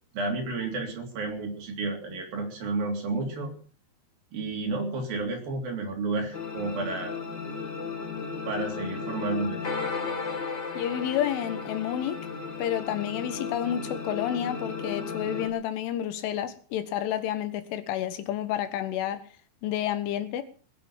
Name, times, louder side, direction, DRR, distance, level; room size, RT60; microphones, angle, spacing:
voice 1, 0.1-3.5 4.3-7.1 8.5-9.6, right 3 dB, 50° right, 4.8 m, -31 dB
sound 1, 6.3-15.5, left 5 dB, 50° left, 1.3 m, -34 dB
voice 2, 10.8-12.2 12.6-19.2 19.6-20.4, left 11 dB, 90° left, 3.9 m, -30 dB
20.0 x 8.3 x 7.3 m
omnidirectional pair, 5.4 m